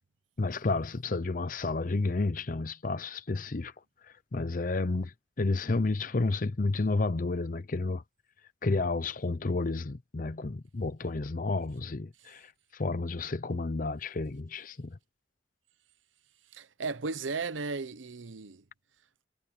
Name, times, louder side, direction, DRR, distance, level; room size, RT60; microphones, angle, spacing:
voice 1, 0.4-3.7 4.3-5.1 5.4-8.0 8.6-15.0, left 3 dB, 45° left, 0.6 m, -31 dB
voice 2, 16.5-18.6, right 4 dB, 85° right, 0.8 m, -35 dB
head